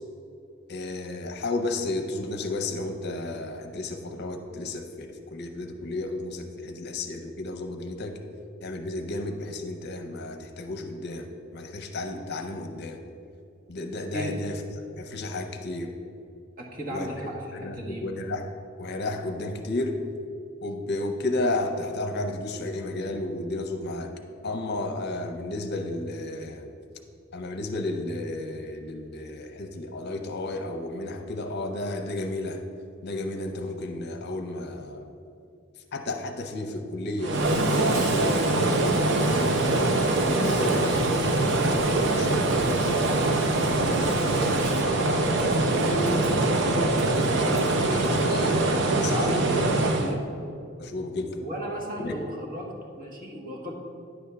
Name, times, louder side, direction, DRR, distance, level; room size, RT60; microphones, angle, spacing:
voice 1, 0.7-8.2 8.6-13.0 13.7-14.6 15.0-15.9 16.9-17.3 17.5-18.5 18.8-20.0 20.6-24.1 24.4-26.7 27.3-32.6 33.0-35.1 35.9-40.0 40.4-43.1 43.6-46.9 47.8-48.6 49.0-49.6 50.8-51.4 52.0-52.2, left 2 dB, 55° left, 6 dB, 0.7 m, -33 dB
voice 2, 16.6-18.0 49.1-50.2 51.4-53.7, equal, 45° right, -1 dB, 1.3 m, -35 dB
sound 1, 37.2-50.1, right 2 dB, 60° right, 0.7 m, -23 dB
Insect, 37.3-48.7, right 2 dB, 90° right, 1.4 m, -43 dB
9.8 x 3.5 x 6.7 m, 2.4 s
head